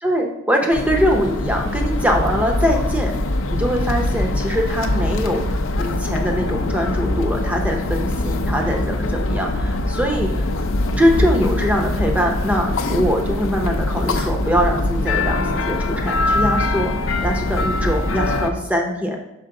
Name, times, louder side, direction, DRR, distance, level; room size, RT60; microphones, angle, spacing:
voice 1, 0.0-3.1 3.5-10.5 11.0-16.9 17.2-19.2, equal, 5° right, 2 dB, 0.6 m, -22 dB
sound 1, 0.7-18.5, left 2 dB, 65° left, 0.5 m, -22 dB
5.9 x 5.4 x 3.7 m, 0.92 s
head